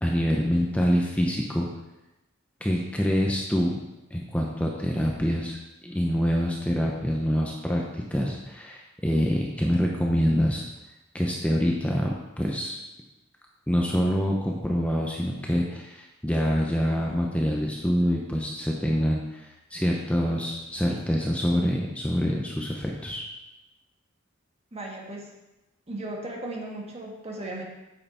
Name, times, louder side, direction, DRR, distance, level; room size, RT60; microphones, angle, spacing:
voice 1, 0.0-1.7 2.6-3.8 4.1-10.6 11.1-12.7 13.7-23.2, equal, 5° left, -1 dB, 0.8 m, -26 dB
voice 2, 24.7-25.3 25.9-27.6, right 1 dB, 30° right, -1 dB, 1.6 m, -36 dB
8.8 x 6.7 x 4.3 m, 0.99 s
head